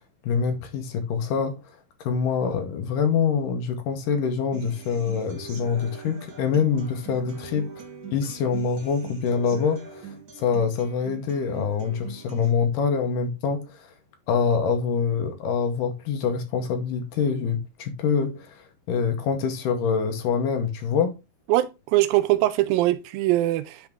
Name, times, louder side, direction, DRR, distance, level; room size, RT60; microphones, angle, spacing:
voice 1, 0.2-1.6 2.0-7.7 8.1-13.9 14.3-21.1, left 6 dB, 75° left, 2.4 m, -25 dB
Human voice / Acoustic guitar, 4.5-12.5, right 6 dB, 70° right, 0.8 m, -42 dB
voice 2, 21.5-23.9, right 16 dB, 85° right, 2.3 m, -22 dB
10.5 x 3.5 x 3.5 m
omnidirectional pair, 4.1 m